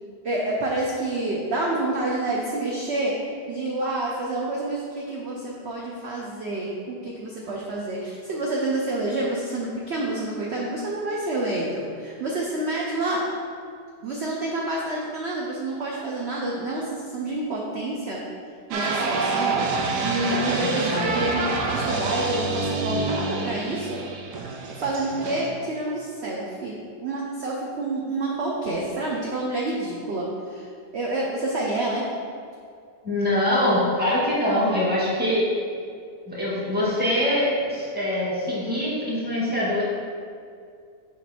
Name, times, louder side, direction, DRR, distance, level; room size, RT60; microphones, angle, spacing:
voice 1, 0.2-13.2 14.0-18.2 18.7-21.4 21.7-24.0 24.8-32.0, right 2 dB, 50° right, -3 dB, 0.9 m, -28 dB
sound 1, 18.7-25.5, right 3 dB, 75° right, 1.4 m, -27 dB
voice 2, 20.6-21.1 33.0-35.5 36.3-39.8, left 1 dB, 5° right, -7 dB, 1.7 m, -24 dB
7.6 x 5.2 x 4.3 m, 2.3 s
omnidirectional pair, 1.8 m